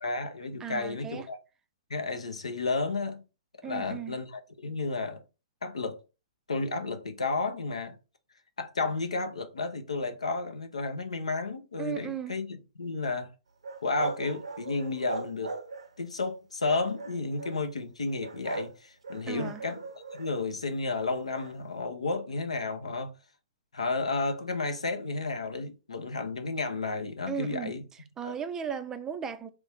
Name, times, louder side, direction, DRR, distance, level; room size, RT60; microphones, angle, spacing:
voice 1, 0.0-1.4 1.9-3.2 3.6-5.2 5.6-6.0 6.5-8.0 8.6-13.3 13.8-15.6 16.0-19.8 20.1-23.1 23.7-27.8 28.2-28.4, left 3 dB, 90° left, 0.7 m, -32 dB
voice 2, 0.6-1.2 3.6-4.2 11.8-12.4 19.3-19.6 27.3-27.7 28.2-29.5, right 7 dB, 15° right, 0.4 m, -36 dB
sound 1, 13.6-16.0 16.6-17.6 18.2-18.8 19.0-20.5 21.2-21.5, right 3 dB, 85° right, 0.6 m, -39 dB
3.1 x 2.6 x 3.4 m
hypercardioid pair, 125°, 3 cm